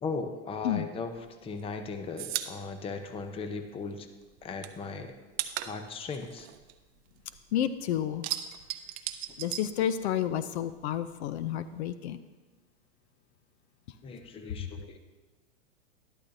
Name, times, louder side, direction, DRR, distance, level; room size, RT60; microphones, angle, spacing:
voice 1, 0.0-1.1 1.4-4.1 4.4-5.1 5.7-6.5 14.0-15.0, left 4 dB, 15° left, 8 dB, 0.6 m, -37 dB
sound 1, 1.1-3.9 4.2-7.5 7.8-10.4 10.7-11.8, right 13 dB, 25° right, 0.4 m, -38 dB
voice 2, 7.5-8.2 9.4-12.2, left 10 dB, 60° left, 13 dB, 0.6 m, -30 dB
12.0 x 11.5 x 2.7 m, 1.2 s
hypercardioid pair, 125°, 38 cm